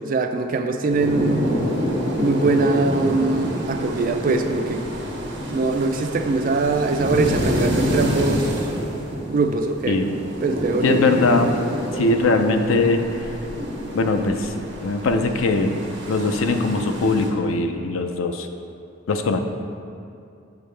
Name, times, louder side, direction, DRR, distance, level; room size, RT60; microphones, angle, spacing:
voice 1, 0.0-1.5 2.2-4.8 5.5-8.5 9.3-10.0 10.4-11.0, right 3 dB, 45° right, 6 dB, 0.4 m, -22 dB
sound 1, 0.9-17.3, equal, 60° right, 1.1 m, -27 dB
voice 2, 10.8-11.5 11.9-13.4 13.9-15.8 16.1-18.5 19.1-19.4, left 3 dB, 85° left, 6 dB, 0.5 m, -21 dB
7.0 x 5.6 x 3.3 m, 2.5 s
head